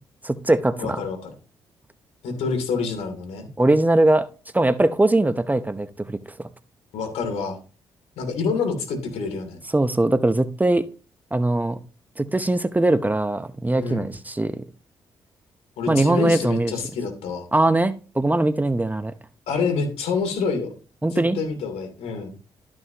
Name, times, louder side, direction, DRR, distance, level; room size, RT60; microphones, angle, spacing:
voice 1, 0.2-1.0 3.6-4.3 4.5-6.2 9.7-10.9 11.3-11.8 12.2-14.6 15.9-16.7 17.5-19.1 21.0-21.4, right 2 dB, 15° right, 0.8 m, -21 dB
voice 2, 0.8-1.3 2.2-3.5 6.9-7.6 8.2-9.6 13.8-14.1 15.8-17.5 19.5-20.7 21.1-22.3, left 5 dB, 75° left, 2.9 m, -27 dB
13.0 x 6.2 x 2.9 m
hypercardioid pair, 50°, 11 cm